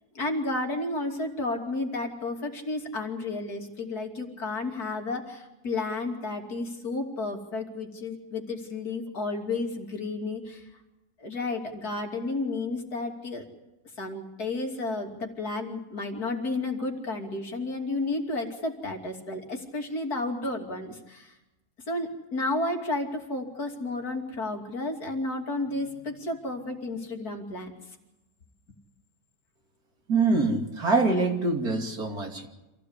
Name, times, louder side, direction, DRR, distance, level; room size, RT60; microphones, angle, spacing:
voice 1, 0.1-10.7 11.2-13.4 14.0-21.3 21.9-27.7, left 2 dB, 75° left, 2 dB, 3.3 m, -32 dB
voice 2, 30.1-32.5, right 3 dB, 75° right, 2 dB, 3.4 m, -24 dB
27.0 x 16.5 x 8.2 m, 1.0 s
omnidirectional pair, 1.6 m